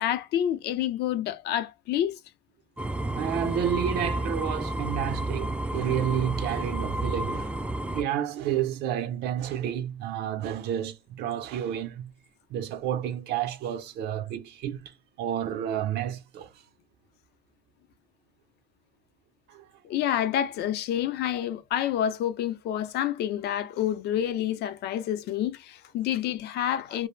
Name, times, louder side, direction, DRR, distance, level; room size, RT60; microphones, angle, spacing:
voice 1, 0.0-2.2 19.8-27.1, left 10 dB, 75° left, 0.5 m, -28 dB
sound 1, 2.8-8.0, right 1 dB, 5° right, 0.3 m, -31 dB
voice 2, 3.1-7.6 7.9-12.1 12.5-14.9 15.2-16.5 19.5-19.6, right 10 dB, 75° right, 0.5 m, -30 dB
2.3 x 2.0 x 3.1 m
cardioid pair, 110°, 17 cm